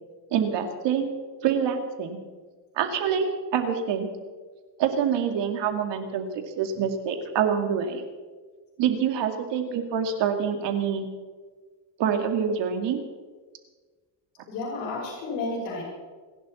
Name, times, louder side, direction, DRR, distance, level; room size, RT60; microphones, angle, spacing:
voice 1, 0.3-1.1 1.4-2.2 2.8-4.1 4.8-6.3 6.6-8.0 8.8-11.1 12.0-13.0, right 7 dB, 75° right, 6 dB, 2.3 m, -26 dB
voice 2, 14.5-15.8, left 3 dB, 90° left, -6 dB, 6.2 m, -31 dB
28.5 x 11.0 x 4.3 m, 1.4 s
cardioid pair, 115°, 43 cm